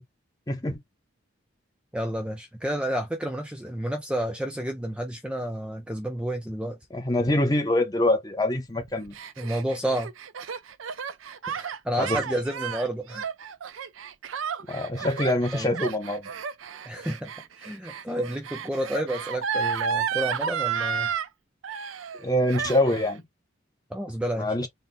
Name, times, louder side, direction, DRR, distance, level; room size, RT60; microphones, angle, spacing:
voice 1, 0.5-0.8 6.9-9.2 12.0-12.2 14.7-16.3 22.2-23.2 24.4-24.7, left 1 dB, 20° left, 0.8 m, -25 dB
voice 2, 1.9-6.8 9.4-10.1 11.5-13.3 15.5-15.7 16.9-21.1 23.9-24.7, right 1 dB, 5° right, 0.5 m, -30 dB
Gasp, 8.8-21.3 21.6-22.2 22.5-23.2, right 7 dB, 85° right, 0.5 m, -32 dB
4.1 x 2.2 x 3.7 m
head